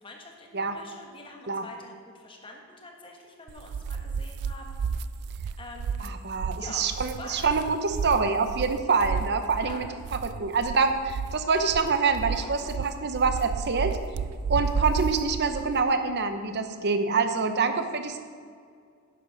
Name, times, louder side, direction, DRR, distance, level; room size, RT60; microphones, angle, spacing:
voice 1, 0.0-4.8 5.6-6.1 6.6-7.5 9.6-9.9, left 2 dB, 25° left, 1 dB, 1.4 m, -45 dB
sound 1, 3.5-15.8, right 5 dB, 85° right, 0.4 m, -33 dB
voice 2, 6.0-9.9 10.2-14.0 14.5-18.2, right 4 dB, 50° right, 8 dB, 0.8 m, -26 dB
10.5 x 8.1 x 5.3 m, 2.1 s
head